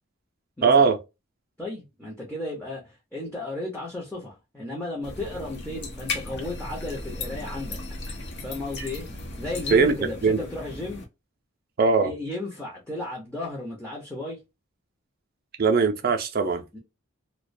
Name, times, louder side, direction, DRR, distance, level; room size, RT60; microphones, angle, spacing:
voice 1, 0.6-1.0 9.7-10.4 11.8-12.1 15.6-16.6, right 5 dB, 45° right, 0.4 m, -20 dB
voice 2, 1.6-7.8 8.4-9.1 9.4-11.0 12.0-14.4 16.7-16.8, left 2 dB, 5° left, 0.6 m, -34 dB
sound 1, 5.0-11.0, left 3 dB, 50° left, 0.6 m, -36 dB
2.3 x 2.1 x 2.5 m
head